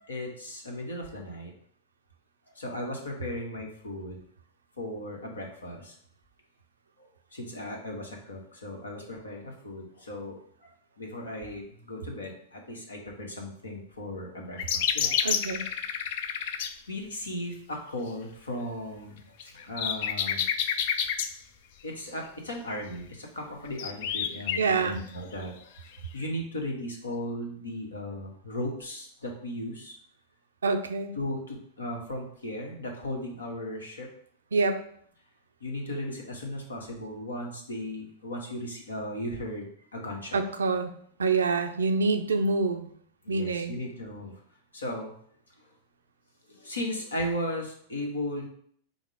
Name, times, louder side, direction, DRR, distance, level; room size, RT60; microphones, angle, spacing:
voice 1, 0.1-1.5 2.5-4.2 4.8-5.9 7.3-10.3 10.6-10.7 11.0-15.3 16.9-20.5 21.8-25.5 25.8-30.0 31.2-34.1 35.6-40.4 43.2-44.3 44.7-45.1 46.5-48.5, left 1 dB, 80° left, 1 dB, 1.0 m, -36 dB
sound 1, 14.6-16.7 19.4-21.3 23.7-24.6 25.9-26.0, left 8 dB, 55° left, 0.4 m, -29 dB
voice 2, 15.2-15.7 24.6-25.0 30.6-31.2 34.5-34.8 40.3-40.9 41.2-42.9 43.3-43.8, right 4 dB, 75° right, 8 dB, 0.4 m, -26 dB
5.2 x 2.1 x 4.8 m, 0.62 s
figure-of-eight pair, 95°, 0 cm